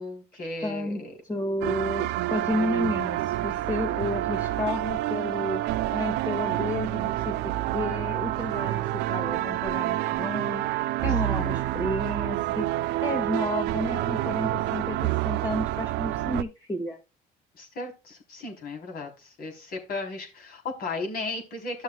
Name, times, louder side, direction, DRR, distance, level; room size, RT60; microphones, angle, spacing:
voice 1, 0.0-1.1 11.3-11.6 17.6-21.8, left 3 dB, 60° left, 2 dB, 3.7 m, -35 dB
voice 2, 0.6-1.0 1.3-5.6 5.9-17.0, left 1 dB, 20° left, 3 dB, 1.7 m, -32 dB
sound 1, 1.6-16.4, right 15 dB, 90° right, 0.5 m, -28 dB
14.0 x 6.3 x 2.3 m, 0.29 s
cardioid pair, 110°, 17 cm